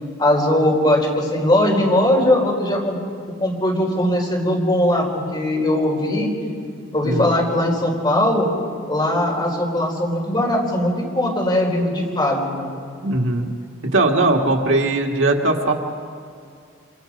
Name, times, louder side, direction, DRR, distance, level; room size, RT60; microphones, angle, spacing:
voice 1, 0.2-3.0 3.4-6.3 6.9-8.5 8.9-12.7, left 1 dB, 20° left, -2 dB, 4.5 m, -19 dB
voice 2, 7.0-7.3 13.0-13.5 13.8-15.7, right 2 dB, 70° right, 2 dB, 1.9 m, -19 dB
28.5 x 26.5 x 5.3 m, 2.3 s
head